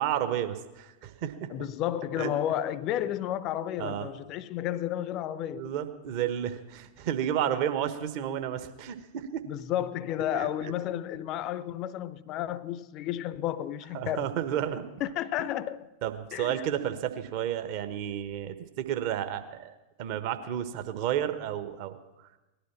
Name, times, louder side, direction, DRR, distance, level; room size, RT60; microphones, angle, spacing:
voice 1, 0.0-1.7 2.2-2.3 3.8-4.3 5.5-9.4 10.3-10.5 13.9-14.8 16.0-22.0, right 10 dB, 45° right, 1.2 m, -32 dB
voice 2, 1.5-5.7 9.5-14.3 15.0-15.9 16.3-16.6, left 11 dB, 40° left, 0.6 m, -32 dB
18.5 x 12.0 x 5.8 m
figure-of-eight pair, 90°, 0 cm